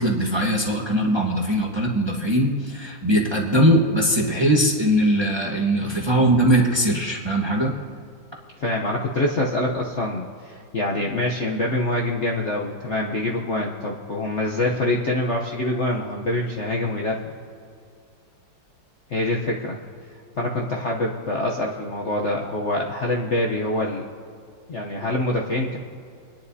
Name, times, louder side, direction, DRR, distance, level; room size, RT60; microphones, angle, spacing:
voice 1, 0.0-7.7, equal, 15° right, -1 dB, 1.0 m, -20 dB
voice 2, 8.6-17.2 19.1-19.8 20.4-24.0 24.7-25.8, left 1 dB, 50° left, -1 dB, 0.9 m, -25 dB
27.0 x 10.5 x 2.7 m, 2.4 s
omnidirectional pair, 2.1 m